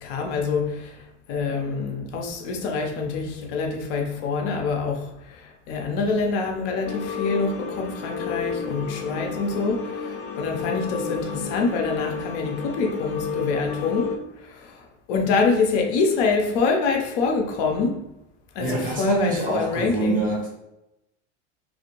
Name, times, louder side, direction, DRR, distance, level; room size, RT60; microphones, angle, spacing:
voice 1, 0.0-18.0 18.5-20.2, left 4 dB, 70° left, 0.7 m, -26 dB
sound 1, 6.9-14.2, left 5 dB, 40° left, 0.4 m, -31 dB
voice 2, 18.6-20.5, right 2 dB, 20° right, 1.0 m, -26 dB
2.5 x 2.0 x 2.9 m
supercardioid pair, 110°, 37 cm